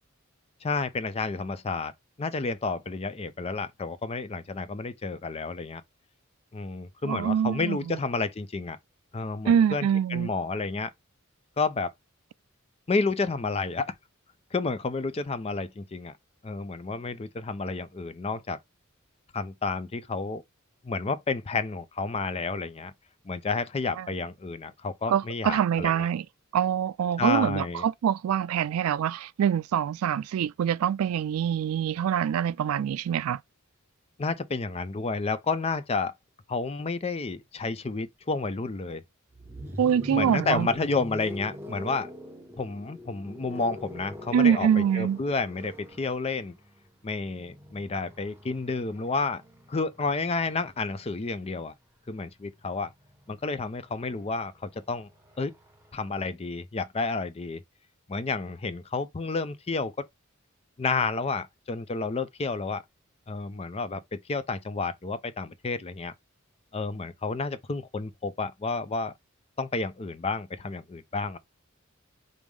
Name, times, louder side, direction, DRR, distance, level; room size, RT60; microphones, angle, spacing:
voice 1, 0.6-1.9 2.2-5.8 6.5-8.8 9.1-10.9 11.6-11.9 12.9-13.9 14.5-16.1 16.4-18.6 19.3-20.4 20.8-22.9 23.3-26.1 27.2-27.8 34.2-36.1 36.5-39.0 40.1-42.1 42.6-46.6 47.0-49.4 49.7-51.7 52.1-52.9 53.3-55.1 55.4-55.5 55.9-57.6 58.1-59.9 60.8-62.8 63.3-66.1 66.7-69.1 69.6-71.4, left 4 dB, 30° left, 0.5 m, -30 dB
voice 2, 7.0-8.0 9.5-10.3 24.0-24.1 25.1-26.3 26.5-33.4 39.8-40.7 44.3-45.2, right 8 dB, 90° right, 0.3 m, -25 dB
sound 1, 39.3-51.3 52.5-56.1, left 1 dB, 10° right, 0.8 m, -44 dB
5.3 x 2.0 x 4.7 m
head